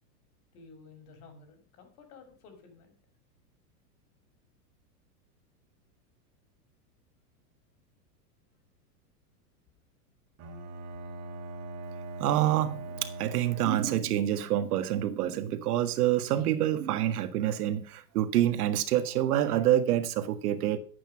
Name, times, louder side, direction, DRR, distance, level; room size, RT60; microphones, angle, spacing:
voice 1, 0.5-3.0, left 4 dB, 65° left, 6.4 m, -53 dB
Bowed string instrument, 10.4-14.3, right 2 dB, 35° right, 3.4 m, -41 dB
voice 2, 12.2-20.8, right 12 dB, 65° right, 1.8 m, -27 dB
14.0 x 8.9 x 5.8 m
hypercardioid pair, 130°, 48 cm